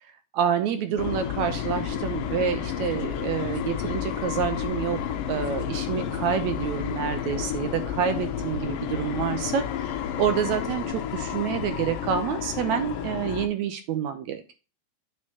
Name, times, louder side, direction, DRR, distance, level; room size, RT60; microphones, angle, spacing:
voice 1, 0.3-5.0 5.3-9.9 10.2-14.5, right 8 dB, 75° right, 8 dB, 1.8 m, -28 dB
sound 1, 1.0-13.5, left 9 dB, 80° left, 2.5 m, -31 dB
9.3 x 6.4 x 2.9 m, 0.32 s
omnidirectional pair, 4.0 m